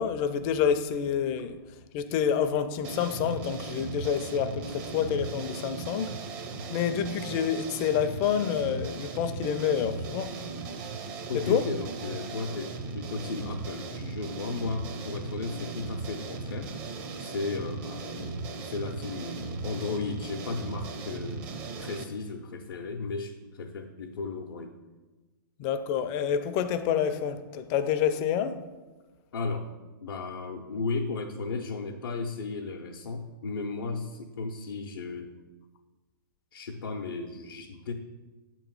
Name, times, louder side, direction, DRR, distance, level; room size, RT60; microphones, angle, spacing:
voice 1, 0.0-1.6 1.9-6.2 6.7-10.3 11.3-11.7 25.6-28.6, left 8 dB, 35° left, 0.4 m, -28 dB
sound 1, 2.8-22.0, right 3 dB, 35° right, 0.6 m, -37 dB
voice 2, 11.3-21.5 21.8-24.7 29.3-29.7 30.0-35.3 36.5-37.9, left 3 dB, 85° left, 0.6 m, -35 dB
6.9 x 3.0 x 5.3 m
hypercardioid pair, 130°, 12 cm